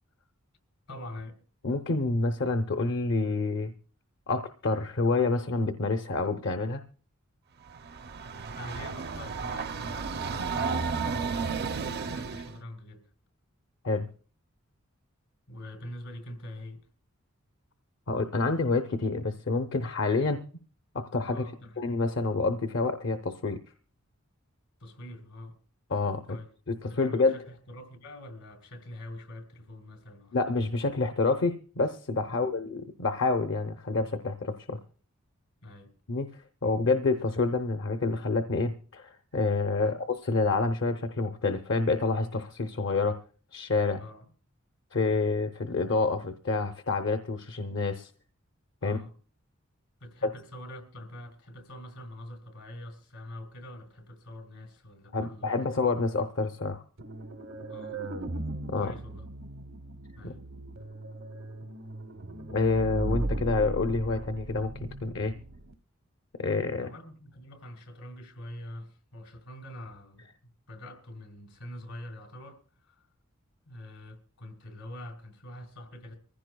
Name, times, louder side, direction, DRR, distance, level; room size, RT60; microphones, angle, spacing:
voice 1, 0.9-1.4 8.5-11.3 11.9-13.1 15.5-16.8 21.3-21.9 24.8-25.6 26.2-26.5 26.9-30.4 32.3-32.5 35.6-35.9 39.8-40.0 44.0-44.3 48.8-49.1 50.0-55.7 57.7-58.2 58.7-59.3 60.1-60.4 66.8-73.0 73.7-76.2, left 1 dB, 80° left, 3.2 m, -44 dB
voice 2, 1.6-3.7 4.3-6.8 13.8-14.1 18.1-20.4 20.9-21.4 21.8-23.6 25.9-26.2 26.7-27.4 30.3-34.8 36.1-36.3 36.6-43.2 43.5-44.0 44.9-48.1 48.8-49.0 50.2-50.3 55.1-56.8 58.7-58.9 60.2-60.3 62.5-65.4 66.4-66.9, left 3 dB, 60° left, 0.7 m, -28 dB
Train, 7.7-12.6, right 5 dB, 50° right, 0.5 m, -33 dB
sound 1, 57.0-65.7, right 1 dB, 75° right, 0.9 m, -37 dB
24.0 x 15.0 x 2.3 m
head